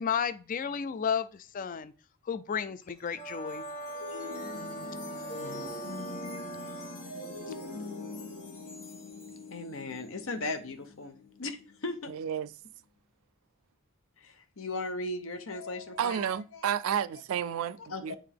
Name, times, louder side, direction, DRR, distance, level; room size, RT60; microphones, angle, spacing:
voice 1, 0.0-1.9 2.3-3.6 5.3-5.6, left 7 dB, 40° left, 0.4 m, -33 dB
sound 1, 2.8-12.1, left 2 dB, 85° left, 2.0 m, -43 dB
Brass instrument, 3.1-7.0, right 2 dB, 20° left, 2.9 m, -41 dB
voice 2, 9.5-12.1 14.2-17.0 17.6-18.2, left 2 dB, 70° left, 0.8 m, -38 dB
voice 3, 12.1-12.5 16.0-18.2, right 9 dB, 75° right, 0.3 m, -31 dB
7.8 x 3.6 x 3.5 m
head